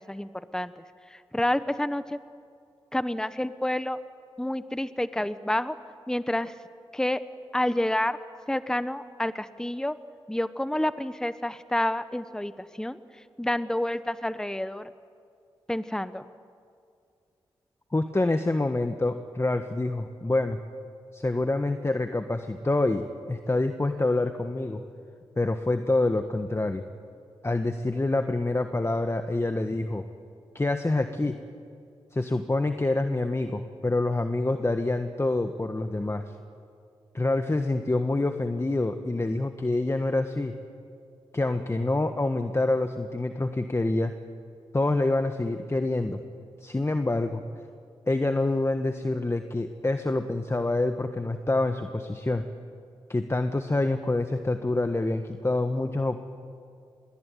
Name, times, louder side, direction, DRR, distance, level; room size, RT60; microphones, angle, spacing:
voice 1, 0.1-2.2 2.9-4.0 4.4-5.8 6.1-6.6 6.9-7.2 7.5-8.2 8.5-10.0 10.3-13.0 13.4-14.9 15.7-16.3, left 1 dB, 5° left, 13 dB, 1.0 m, -29 dB
voice 2, 17.9-20.6 21.1-24.8 25.4-26.8 27.4-30.0 30.5-31.4 32.1-36.3 37.1-40.5 41.3-44.1 44.7-46.2 46.6-47.4 48.1-52.4 53.1-56.2, left 2 dB, 25° left, 7 dB, 1.5 m, -26 dB
25.5 x 21.5 x 9.3 m, 2.3 s
supercardioid pair, 40°, 10 cm